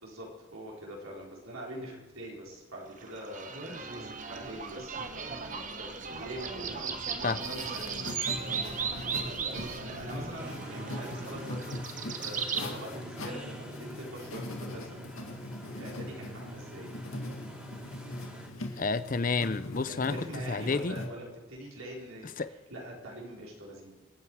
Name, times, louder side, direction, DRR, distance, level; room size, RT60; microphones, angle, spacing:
voice 1, 0.0-8.0 8.4-9.1 9.5-15.0 15.8-16.9 19.8-23.9, right 1 dB, 85° right, -2 dB, 4.5 m, -44 dB
sound 1, 3.0-12.7, right 5 dB, 35° right, 1.1 m, -37 dB
sound 2, 7.4-21.1, left 1 dB, 85° left, 2.1 m, -41 dB
sound 3, 10.4-18.5, equal, 5° right, 2.8 m, -46 dB
voice 2, 18.8-20.1 20.5-21.0 22.4-22.5, left 4 dB, 40° left, 14 dB, 0.5 m, -30 dB
27.5 x 9.3 x 4.8 m, 1.2 s
head